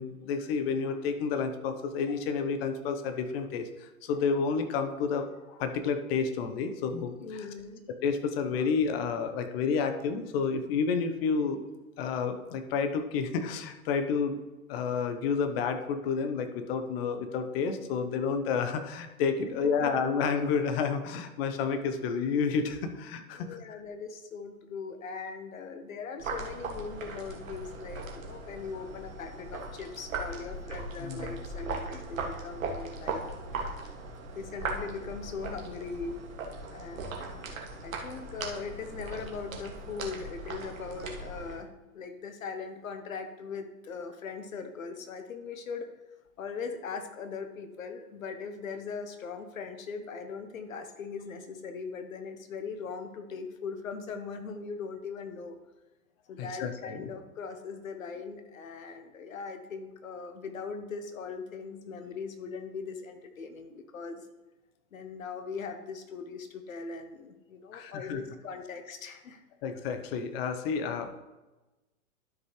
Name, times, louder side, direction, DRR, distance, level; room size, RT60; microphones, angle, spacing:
voice 1, 0.0-7.5 8.0-11.6 12.0-14.4 14.7-23.5 31.0-31.3 56.4-57.1 67.7-68.2 69.6-71.2, left 5 dB, 45° left, 8 dB, 1.0 m, -30 dB
voice 2, 7.2-7.8 19.4-19.9 23.3-33.3 34.4-36.2 36.7-37.5 37.8-45.9 46.4-55.6 56.3-64.3 64.9-69.4, left 5 dB, 75° left, 8 dB, 1.2 m, -40 dB
sound 1, 26.2-41.6, right 3 dB, 70° right, 1.7 m, -39 dB
12.5 x 5.3 x 3.2 m, 1.1 s
hypercardioid pair, 105°, 41 cm